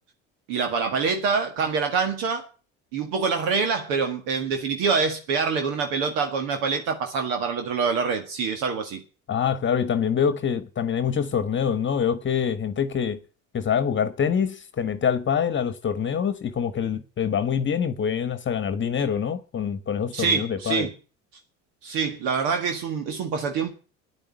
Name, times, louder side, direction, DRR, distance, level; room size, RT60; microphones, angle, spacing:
voice 1, 0.5-2.5 2.9-9.0 20.1-20.9 21.8-23.7, right 5 dB, 70° right, 1.8 m, -25 dB
voice 2, 9.3-13.2 13.5-20.9, left 7 dB, 35° left, 1.2 m, -25 dB
9.9 x 8.9 x 9.7 m
hypercardioid pair, 80°, 34 cm